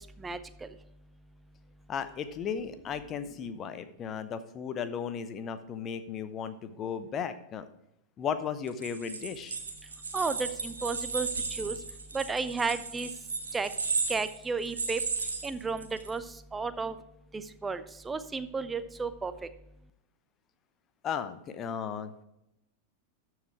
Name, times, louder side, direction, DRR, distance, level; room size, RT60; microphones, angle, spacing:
voice 1, 0.2-0.7 10.1-11.8 12.1-13.1 13.5-13.7 14.1-15.0 15.4-16.2 16.5-16.9 17.3-19.3, right 4 dB, 15° right, 13 dB, 0.6 m, -33 dB
voice 2, 1.9-7.7 8.2-9.6 21.0-22.1, left 7 dB, 30° left, 11 dB, 0.8 m, -35 dB
sound 1, 8.7-16.1, right 4 dB, 70° right, 1.2 m, -35 dB
13.0 x 4.9 x 4.7 m, 0.83 s
figure-of-eight pair, 90°, 0 cm